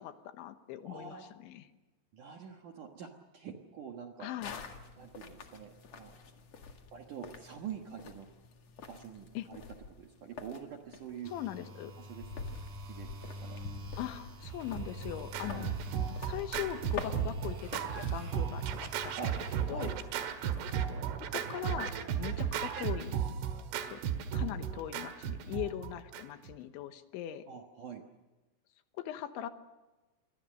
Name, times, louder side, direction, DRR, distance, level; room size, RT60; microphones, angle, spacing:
voice 1, 0.0-1.7 4.2-4.6 9.4-9.5 11.3-11.9 14.0-15.7 16.2-19.4 19.7-19.9 21.3-23.2 23.8-24.0 24.3-27.5 28.9-29.5, left 12 dB, 75° left, 9 dB, 3.4 m, -40 dB
voice 2, 0.9-1.3 2.1-4.3 5.0-6.1 6.9-8.3 8.9-9.6 10.0-11.3 12.0-13.6 15.4-15.7 19.2-19.3 19.7-19.9 22.3-22.4 27.5-28.0, right 7 dB, 65° right, 3 dB, 2.1 m, -46 dB
sound 1, 4.4-21.0, left 4 dB, 50° left, 2.2 m, -47 dB
sound 2, 11.2-19.7, equal, 45° right, 4.9 m, -48 dB
Scratching (performance technique), 14.4-26.5, right 8 dB, 80° right, 4.1 m, -35 dB
28.0 x 23.5 x 6.5 m, 1.1 s
omnidirectional pair, 5.6 m